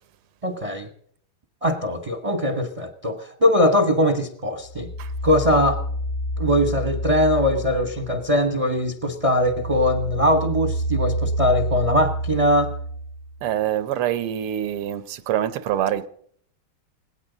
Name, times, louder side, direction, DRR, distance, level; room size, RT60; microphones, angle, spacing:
voice 1, 0.4-0.9 1.6-4.9 5.2-5.8 6.4-12.7, left 1 dB, 25° right, 0.8 m, -21 dB
sound 1, 4.7-8.6 8.9-13.5, right 1 dB, 55° left, 1.2 m, -28 dB
voice 2, 13.4-16.1, right 11 dB, 90° right, 1.9 m, -25 dB
19.0 x 17.0 x 3.9 m
omnidirectional pair, 2.4 m